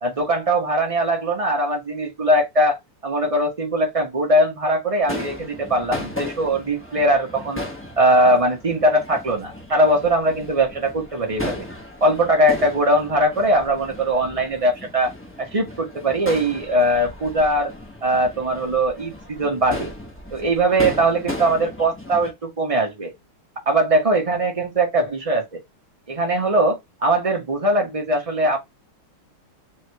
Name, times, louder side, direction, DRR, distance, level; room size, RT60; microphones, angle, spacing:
voice 1, 0.0-7.6 8.0-11.7 12.0-15.1 15.4-17.7 18.0-19.9 20.3-23.1 23.7-25.4 26.1-28.6, right 1 dB, 45° right, 0.4 m, -20 dB
Crowd / Fireworks, 5.0-22.3, left 1 dB, 10° left, 0.5 m, -35 dB
3.7 x 3.1 x 3.4 m
omnidirectional pair, 2.3 m